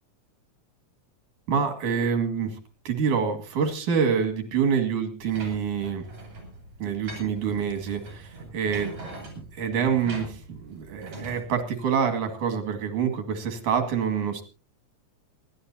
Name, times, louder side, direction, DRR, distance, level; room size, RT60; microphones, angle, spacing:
voice 1, 1.5-2.6 2.9-6.1 6.8-8.9 9.4-14.4, right 6 dB, 85° right, 7 dB, 3.6 m, -26 dB
sound 1, 5.2-11.4, right 2 dB, 70° right, 7.0 m, -42 dB
26.5 x 11.5 x 2.8 m, 0.33 s
omnidirectional pair, 3.4 m